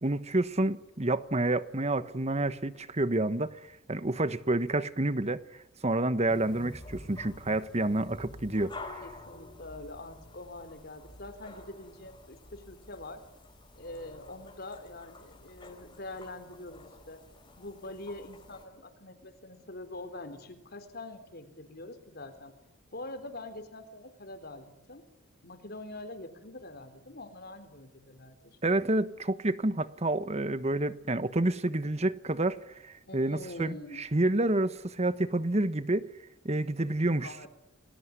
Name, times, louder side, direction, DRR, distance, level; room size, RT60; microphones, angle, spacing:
voice 1, 0.0-3.6 3.9-5.4 5.8-9.0 28.6-36.1 36.4-37.5, right 2 dB, 35° right, 1.3 m, -29 dB
sound 1, 6.3-18.7, left 2 dB, 25° left, 4.2 m, -49 dB
voice 2, 9.0-13.2 13.8-17.2 17.5-22.5 22.9-25.0 25.4-28.6 33.1-34.1 37.2-37.5, left 2 dB, 50° left, 4.0 m, -44 dB
30.0 x 20.0 x 9.8 m
head